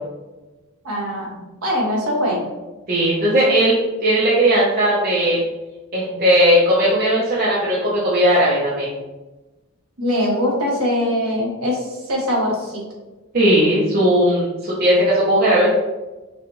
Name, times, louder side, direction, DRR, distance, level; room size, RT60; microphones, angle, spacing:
voice 1, 0.8-2.5 10.0-12.8, left 1 dB, 85° right, -3 dB, 1.5 m, -22 dB
voice 2, 2.9-5.4 5.9-8.9 13.3-15.7, equal, 45° right, -7 dB, 0.8 m, -17 dB
5.9 x 2.5 x 3.1 m, 1.1 s
head